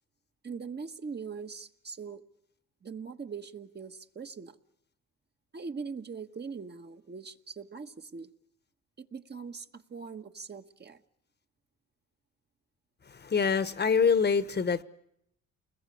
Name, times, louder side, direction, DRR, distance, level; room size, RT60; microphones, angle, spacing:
voice 1, 0.4-2.2 2.8-4.6 5.5-8.3 9.0-11.0, right 5 dB, 35° right, 1.4 m, -41 dB
voice 2, 13.1-14.8, left 6 dB, 35° left, 1.3 m, -25 dB
29.0 x 21.0 x 8.6 m
cardioid pair, 90°, 30 cm